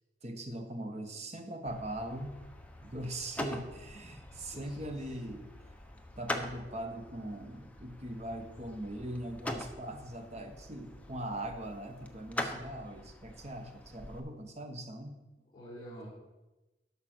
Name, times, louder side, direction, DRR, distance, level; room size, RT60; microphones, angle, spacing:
voice 1, 0.2-2.4 2.8-5.5 6.2-15.2, right 1 dB, 40° right, 5 dB, 1.2 m, -41 dB
sound 1, 1.7-14.2, left 1 dB, 10° left, 0.8 m, -43 dB
voice 2, 4.3-5.2 15.4-16.1, equal, 25° left, -10 dB, 4.1 m, -50 dB
11.5 x 5.8 x 6.2 m, 1.1 s
head